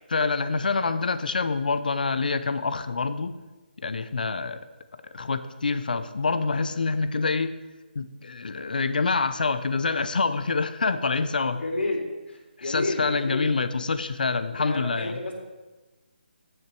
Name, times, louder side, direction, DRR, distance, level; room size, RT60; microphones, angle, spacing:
voice 1, 0.1-3.3 3.8-4.6 5.1-7.5 7.9-11.6 12.6-15.2, left 4 dB, 50° left, 12 dB, 0.7 m, -26 dB
voice 2, 11.5-12.0 12.3-13.6 14.6-15.3, left 2 dB, 85° left, -1 dB, 3.9 m, -30 dB
15.5 x 6.7 x 4.5 m, 1.2 s
hypercardioid pair, 180°, 6 cm